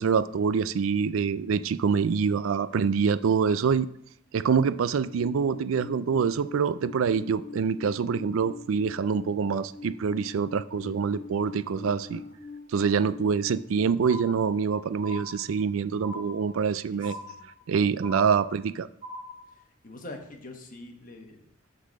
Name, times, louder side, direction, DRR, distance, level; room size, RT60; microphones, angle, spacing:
voice 1, 0.0-3.9 4.3-12.2 12.7-17.2 17.7-18.9, right 6 dB, 75° right, 0.4 m, -25 dB
Alarm, 5.0-13.9, left 4 dB, 70° left, 1.5 m, -43 dB
voice 2, 11.8-12.3 16.9-17.4 19.8-21.4, left 2 dB, 40° left, 1.3 m, -44 dB
sound 1, 14.0-14.7 15.0-15.7 16.0-16.7 17.0-17.7 18.0-18.7 19.0-19.5, equal, 20° right, 1.7 m, -41 dB
8.2 x 4.1 x 6.3 m
head